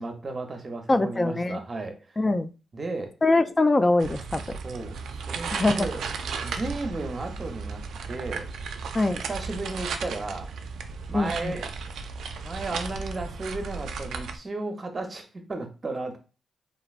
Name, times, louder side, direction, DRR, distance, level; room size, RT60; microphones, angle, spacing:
voice 1, 0.0-2.2 2.7-3.1 4.6-5.0 5.3-6.0 6.4-8.5 9.3-10.5 11.1-11.7 12.4-16.2, right 2 dB, 40° right, 5 dB, 0.7 m, -34 dB
voice 2, 0.9-1.6 2.2-2.5 3.2-4.6 5.5-5.9 8.9-9.2 11.1-11.5, left 2 dB, 25° left, 10 dB, 0.3 m, -23 dB
sound 1, 4.0-14.4, right 5 dB, 80° right, 0.3 m, -35 dB
3.0 x 2.5 x 2.4 m, 0.33 s
cardioid pair, 60°, 0 cm